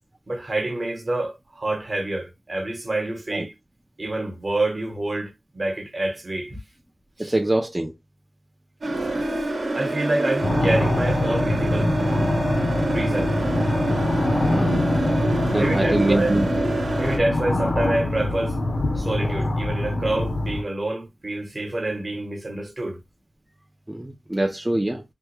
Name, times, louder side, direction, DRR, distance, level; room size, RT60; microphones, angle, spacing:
voice 1, 0.3-3.5 4.0-6.6 7.2-7.3 9.7-12.0 12.9-13.3 15.6-16.3 17.0-18.6 18.9-23.0, right 2 dB, 40° right, 0.9 m, -27 dB
voice 2, 7.2-7.9 14.5-14.9 15.5-16.5 23.9-25.0, right 1 dB, 15° right, 0.4 m, -24 dB
sound 1, 8.8-17.2, right 1 dB, 75° right, 0.9 m, -26 dB
sound 2, 10.4-20.6, left 2 dB, 70° left, 0.7 m, -24 dB
3.3 x 2.1 x 3.1 m
wide cardioid pair, 90°, 0 cm